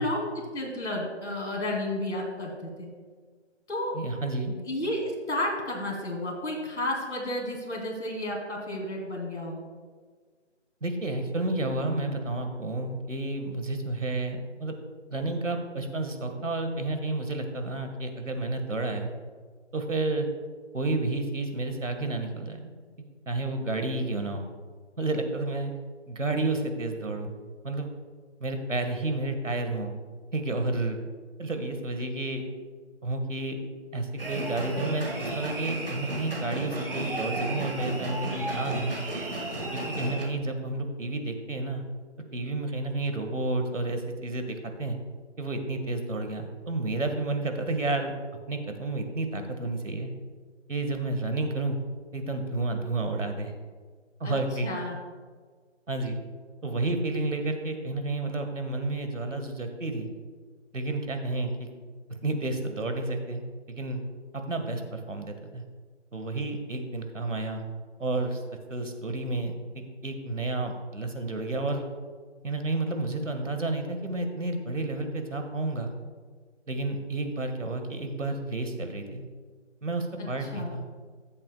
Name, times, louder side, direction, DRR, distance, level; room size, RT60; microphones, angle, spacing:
voice 1, 0.0-2.9 3.7-3.9 4.7-9.6 54.2-54.4 54.6-55.0 80.2-80.8, left 1 dB, 65° left, 0 dB, 2.7 m, -32 dB
voice 2, 3.9-4.6 10.8-14.7 15.1-19.1 19.7-20.3 20.7-22.7 23.2-24.4 25.0-25.7 26.1-27.3 27.6-27.9 28.4-29.9 30.3-31.0 31.4-32.4 33.0-33.6 33.9-39.0 39.7-41.8 42.3-45.0 45.4-48.1 48.5-50.1 50.7-51.8 52.1-53.5 54.2-54.7 55.9-56.2 56.6-60.1 60.7-61.7 62.1-63.4 63.7-64.0 64.3-65.6 66.1-67.6 68.0-68.4 68.7-71.8 72.4-75.9 76.7-79.2 79.8-80.8, right 2 dB, 85° right, 5 dB, 1.6 m, -31 dB
sound 1, 34.2-40.2, right 2 dB, 50° right, 1.8 m, -33 dB
14.0 x 7.5 x 2.3 m, 1.5 s
figure-of-eight pair, 170°, 37 cm